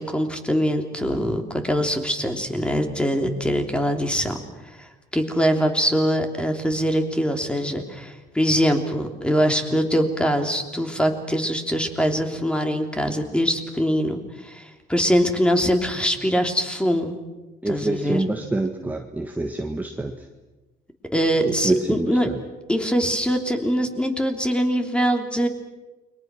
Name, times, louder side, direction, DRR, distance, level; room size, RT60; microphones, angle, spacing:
voice 1, 0.0-4.4 4.8-4.9 5.1-17.2 17.7-18.2 21.1-22.3 22.7-25.5, equal, 5° left, 4 dB, 3.1 m, -23 dB
voice 2, 17.6-20.1 21.4-22.4, right 2 dB, 10° right, 3 dB, 1.6 m, -26 dB
29.5 x 23.0 x 6.2 m, 1.1 s
cardioid pair, 110°, 17 cm